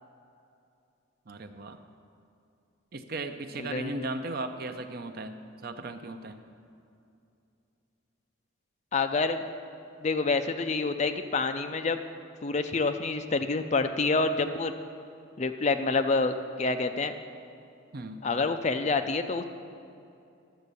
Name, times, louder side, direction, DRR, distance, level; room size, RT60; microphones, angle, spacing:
voice 1, 1.3-1.8 2.9-6.4 17.9-18.2, right 2 dB, 45° right, 8 dB, 0.6 m, -37 dB
voice 2, 3.6-4.1 8.9-9.4 10.0-12.0 12.4-14.7 15.4-16.3 16.6-17.1 18.2-19.4, left 3 dB, 35° left, 8 dB, 0.4 m, -27 dB
11.5 x 7.3 x 6.8 m, 2.6 s
head